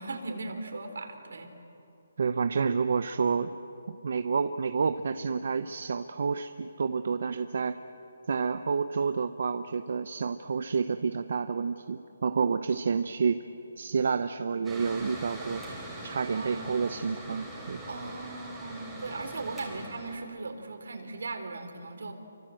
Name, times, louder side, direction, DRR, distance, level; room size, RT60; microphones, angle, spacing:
voice 1, 0.0-1.5 16.3-17.0 17.9-22.1, right 3 dB, 70° right, 6 dB, 3.9 m, -38 dB
voice 2, 2.2-3.6 4.0-7.8 8.3-13.4 13.8-15.6 16.0-17.8, right 5 dB, 45° right, 10 dB, 0.8 m, -29 dB
Mechanical fan, 14.6-20.2, right 1 dB, 5° right, 3.6 m, -42 dB
29.5 x 24.5 x 7.8 m, 2.9 s
hypercardioid pair, 175°, 0 cm